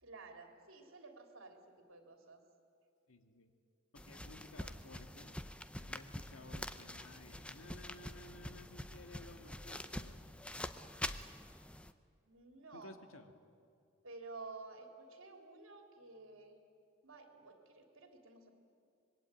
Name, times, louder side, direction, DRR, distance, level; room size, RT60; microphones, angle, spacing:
voice 1, 0.0-2.4 12.2-12.9 14.0-16.6 17.0-18.5, right 3 dB, 75° right, 4 dB, 3.4 m, -53 dB
voice 2, 3.1-3.5 3.9-5.4 5.8-10.3 12.7-13.3, left 2 dB, 80° left, 7 dB, 1.9 m, -56 dB
sound 1, 4.0-11.9, left 1 dB, 5° left, 0.6 m, -46 dB
25.5 x 21.5 x 9.1 m, 2.4 s
head